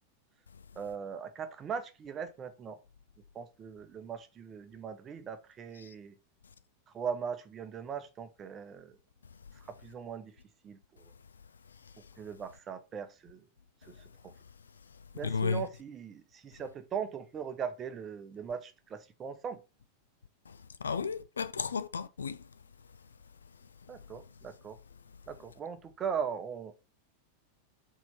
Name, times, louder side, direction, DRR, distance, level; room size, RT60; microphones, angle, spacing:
voice 1, 0.8-2.8 3.3-6.1 6.9-8.9 9.8-10.3 10.6-11.1 12.2-13.4 13.9-14.0 14.2-14.3 15.1-19.6 23.9-24.8 25.3-26.7, right 7 dB, 25° right, 0.9 m, -39 dB
voice 2, 15.2-15.7 20.5-22.4, left 5 dB, 70° left, 0.4 m, -33 dB
4.4 x 4.2 x 5.6 m
figure-of-eight pair, 90°, 0 cm